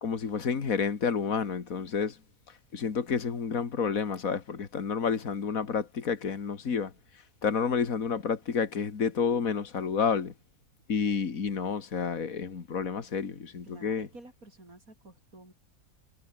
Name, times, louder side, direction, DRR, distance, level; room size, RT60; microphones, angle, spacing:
voice 1, 0.0-2.2 2.7-6.9 7.4-10.3 10.9-14.1, left 6 dB, 70° left, 2.4 m, -30 dB
voice 2, 13.6-15.5, right 2 dB, 75° right, 6.8 m, -51 dB
omnidirectional pair, 1.5 m